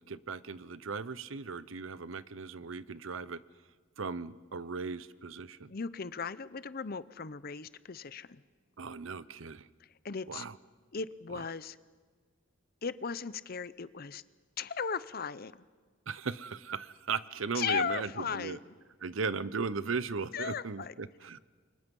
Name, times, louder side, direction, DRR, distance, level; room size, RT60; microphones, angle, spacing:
voice 1, 0.0-3.4 4.0-5.7 8.8-9.7 10.3-10.6 11.3-11.4 16.1-18.6 19.0-21.4, right 5 dB, 80° right, 16 dB, 0.8 m, -37 dB
voice 2, 5.7-8.4 10.0-10.5 10.9-11.8 12.8-14.2 14.6-15.5 17.5-18.6 20.3-20.9, left 6 dB, 50° left, 16 dB, 0.7 m, -36 dB
29.5 x 24.5 x 5.4 m, 1.5 s
head